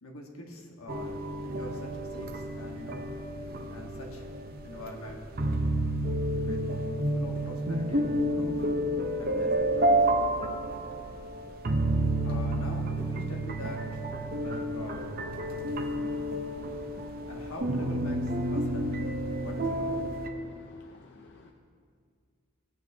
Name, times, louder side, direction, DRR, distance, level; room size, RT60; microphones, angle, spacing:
voice 1, 0.0-3.1 3.7-4.2 4.6-5.3 6.3-8.7 9.1-10.1 12.2-14.0 14.3-15.2 17.3-19.1 19.4-20.1, left 1 dB, 75° left, 0 dB, 1.4 m, -44 dB
sound 1, 0.9-20.3, right 1 dB, 40° right, 0.7 m, -30 dB
voice 2, 16.1-17.3 20.5-21.5, left 3 dB, 50° left, 2 dB, 0.5 m, -56 dB
16.0 x 8.9 x 2.8 m, 2.1 s
head